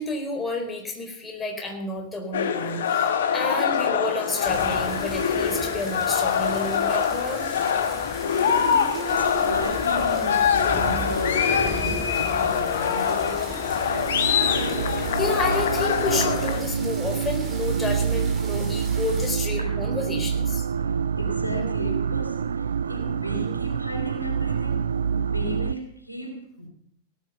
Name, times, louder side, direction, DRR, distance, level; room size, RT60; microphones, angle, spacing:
voice 1, 0.0-7.5 14.7-20.6, left 2 dB, 15° left, 2 dB, 4.3 m, -30 dB
sound 1, 2.3-16.6, left 7 dB, 60° left, 1.4 m, -24 dB
sound 2, 4.4-19.3, right 2 dB, 25° right, 5.2 m, -37 dB
voice 2, 8.5-13.9 19.6-19.8 20.8-26.7, equal, 85° left, 3 dB, 3.0 m, -34 dB
sound 3, 13.8-25.7, right 7 dB, 70° right, 0.5 m, -27 dB
17.5 x 10.0 x 6.7 m, 0.68 s
figure-of-eight pair, 90°, 0 cm